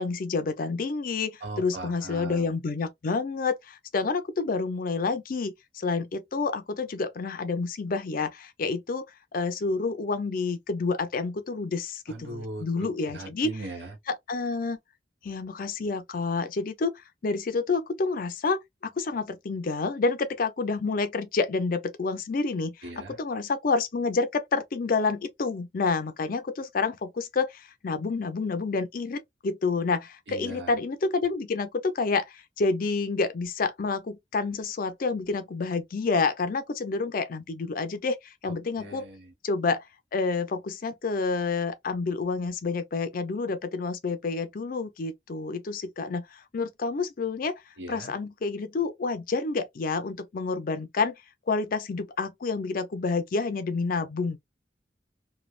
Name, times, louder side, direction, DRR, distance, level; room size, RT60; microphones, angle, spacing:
voice 1, 0.0-9.0 9.3-13.6 14.1-14.8 15.2-22.9 23.2-39.0 39.4-39.8 40.1-47.6 47.9-51.2 51.5-54.4, left 4 dB, 50° left, 0.5 m, -29 dB
voice 2, 1.4-2.5 12.1-14.0 22.8-23.2 30.3-30.7 38.4-39.3 47.8-48.1, right 2 dB, 70° right, 1.0 m, -40 dB
3.2 x 2.2 x 2.3 m
head